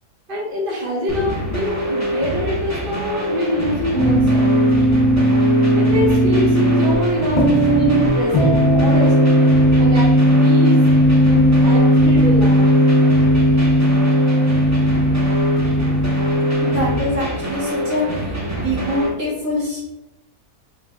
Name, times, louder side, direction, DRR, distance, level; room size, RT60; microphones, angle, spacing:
voice 1, 0.3-4.5 5.7-9.1 9.8-10.1 10.4-10.9 11.3-12.7, equal, 40° right, -4 dB, 0.9 m, -24 dB
sound 1, 1.1-19.1, equal, 25° right, 0.4 m, -25 dB
sound 2, 3.9-17.0, equal, 25° left, 1.0 m, -16 dB
voice 2, 16.6-18.4 18.6-19.9, left 1 dB, 60° right, -7 dB, 2.0 m, -24 dB
3.8 x 2.5 x 3.5 m, 0.89 s
omnidirectional pair, 1.7 m